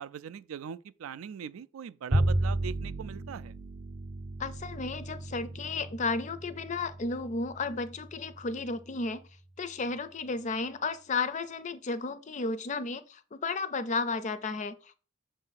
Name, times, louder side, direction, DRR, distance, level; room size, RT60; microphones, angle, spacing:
voice 1, 0.0-3.5, right 7 dB, 80° right, 0.3 m, -41 dB
Bowed string instrument, 2.1-8.6, right 1 dB, 50° right, 0.7 m, -33 dB
voice 2, 4.4-9.2 9.6-14.9, left 3 dB, 35° left, 0.4 m, -33 dB
6.5 x 2.6 x 5.6 m
head